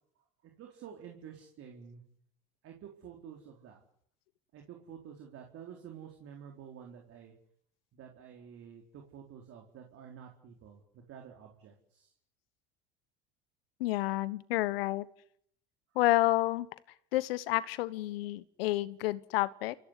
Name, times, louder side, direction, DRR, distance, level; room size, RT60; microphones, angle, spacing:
voice 1, 0.6-2.0 2.6-3.8 4.5-7.3 7.9-10.8 11.1-12.1, right 8 dB, 50° right, 2 dB, 4.3 m, -50 dB
voice 2, 13.8-15.1 15.9-16.7 17.1-19.7, left 17 dB, 80° left, 17 dB, 1.3 m, -30 dB
28.5 x 16.0 x 9.9 m, 0.70 s
hypercardioid pair, 90°, 29 cm